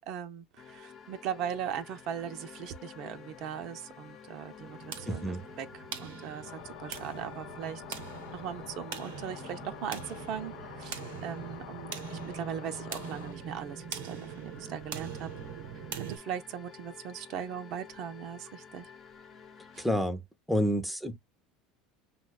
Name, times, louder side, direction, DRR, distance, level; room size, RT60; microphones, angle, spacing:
voice 1, 0.0-5.7 6.0-7.8 8.3-15.3 15.9-18.9 19.7-19.8 20.6-20.8, right 9 dB, 60° right, 0.5 m, -39 dB
sound 1, 0.6-20.0, left 6 dB, 40° left, 0.8 m, -51 dB
sound 2, 4.6-16.2, right 8 dB, 85° right, 0.8 m, -43 dB
voice 2, 5.1-5.4 19.8-20.2 20.5-21.2, equal, 5° left, 0.6 m, -29 dB
sound 3, 6.4-13.3, left 13 dB, 80° left, 0.3 m, -48 dB
5.7 x 2.2 x 2.2 m
supercardioid pair, 100°, 0 cm